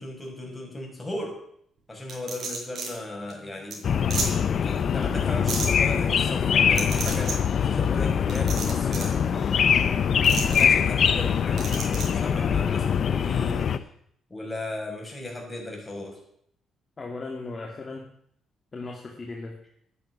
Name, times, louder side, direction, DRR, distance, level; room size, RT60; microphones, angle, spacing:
voice 1, 0.0-1.4 1.9-4.1 4.6-9.5 10.4-11.7 12.1-13.8 14.3-16.2, left 1 dB, 15° left, 1 dB, 6.1 m, -37 dB
sound 1, 2.1-2.9 3.3-3.4 3.7-3.8 4.1-4.3 5.5-5.7 6.7-7.3 8.3-9.1 10.2-10.6 11.6-12.1, right 4 dB, 60° right, 5.6 m, -31 dB
sound 2, 3.8-13.8, left 7 dB, 55° left, 1.0 m, -23 dB
voice 2, 17.0-18.1 18.7-19.6, left 3 dB, 30° left, 0 dB, 2.6 m, -37 dB
10.5 x 10.5 x 9.7 m, 0.69 s
cardioid pair, 90°, 0 cm